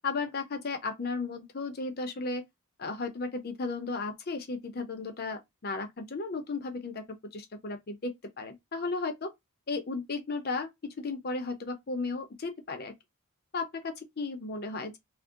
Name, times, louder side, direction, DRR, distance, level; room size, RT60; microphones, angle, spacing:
voice 1, 0.0-2.4 2.8-9.3 9.7-12.9 13.5-15.0, left 3 dB, 45° left, 0.6 m, -35 dB
2.6 x 2.1 x 3.6 m
head